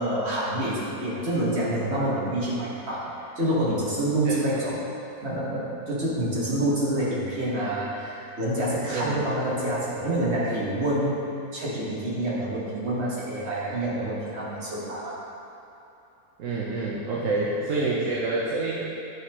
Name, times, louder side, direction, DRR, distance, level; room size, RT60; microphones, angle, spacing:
voice 1, 0.0-3.1 3.3-4.8 5.2-11.2 11.5-15.2 17.1-17.3, right 1 dB, 45° right, -7 dB, 1.7 m, -27 dB
voice 2, 4.2-4.7 8.9-9.2 13.9-14.1 16.4-18.8, right 3 dB, 65° right, -4 dB, 1.0 m, -28 dB
11.0 x 4.2 x 3.0 m, 2.8 s
omnidirectional pair, 1.6 m